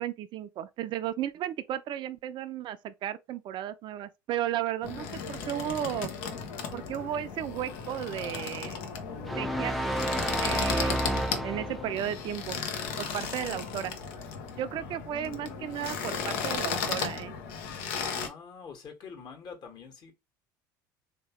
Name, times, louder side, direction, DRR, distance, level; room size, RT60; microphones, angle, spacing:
voice 1, 0.0-6.1 6.7-8.8 9.4-9.9 10.4-12.6 13.0-14.0 14.6-17.4, right 11 dB, 50° right, 0.5 m, -34 dB
sound 1, 4.8-18.3, left 6 dB, 70° left, 0.8 m, -35 dB
sound 2, 9.3-12.0, equal, ahead, 0.5 m, -30 dB
voice 2, 14.8-15.6 18.2-20.1, left 5 dB, 45° left, 1.5 m, -46 dB
3.4 x 2.9 x 3.0 m
hypercardioid pair, 80°, 10 cm